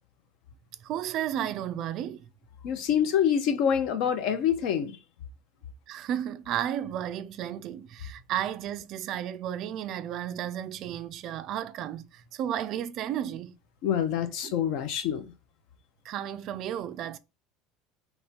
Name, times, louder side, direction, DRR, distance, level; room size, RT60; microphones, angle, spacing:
voice 1, 0.8-2.3 5.9-13.5 14.4-14.5 16.0-17.2, right 10 dB, 40° right, 0.3 m, -33 dB
voice 2, 2.6-5.0 13.8-15.2, left 8 dB, 55° left, 0.6 m, -26 dB
4.1 x 3.0 x 3.5 m
cardioid pair, 165°, 0 cm